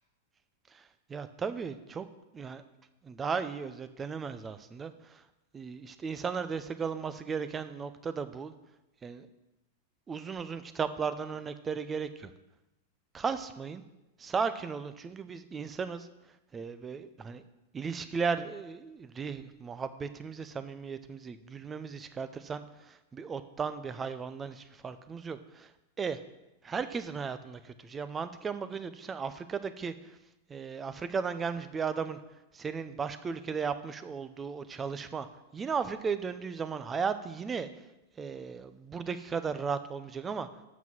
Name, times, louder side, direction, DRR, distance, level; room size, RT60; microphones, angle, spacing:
voice 1, 0.7-2.1 2.3-2.6 3.0-5.2 5.5-8.5 9.0-9.3 10.1-12.3 13.1-13.8 14.2-16.1 16.5-17.4 17.7-25.7 26.0-26.2 26.6-30.2 30.5-32.2 32.5-35.3 35.5-37.7 38.2-40.5, right 5 dB, 20° right, 12 dB, 0.6 m, -35 dB
7.3 x 6.0 x 6.0 m, 0.97 s
hypercardioid pair, 115°, 0 cm